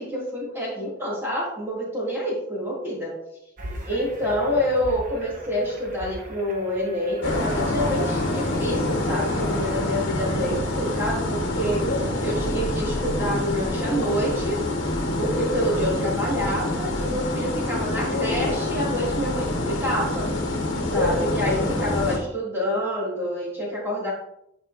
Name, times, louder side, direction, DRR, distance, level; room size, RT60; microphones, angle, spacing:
voice 1, 0.0-3.1 3.9-11.8 12.2-14.6 15.2-20.3 20.8-24.1, equal, 10° right, -6 dB, 2.3 m, -27 dB
sound 1, 3.6-10.2, equal, 40° right, 1.1 m, -40 dB
sound 2, 7.2-22.2, left 1 dB, 70° left, 1.3 m, -26 dB
sound 3, 9.6-18.2, equal, 80° right, 2.3 m, -42 dB
9.6 x 5.3 x 2.6 m, 0.77 s
head